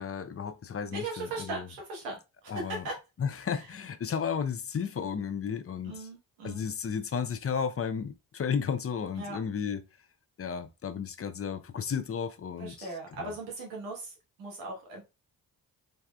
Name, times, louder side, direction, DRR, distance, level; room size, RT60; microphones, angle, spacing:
voice 1, 0.0-1.7 2.5-2.9 3.2-6.1 6.4-9.8 10.4-12.9 13.2-13.3, left 7 dB, 30° left, 0.5 m, -33 dB
voice 2, 0.9-3.0 5.8-6.7 9.2-9.4 12.6-15.0, right 2 dB, 90° right, 1.2 m, -38 dB
3.5 x 3.4 x 2.2 m
hypercardioid pair, 40°, 47 cm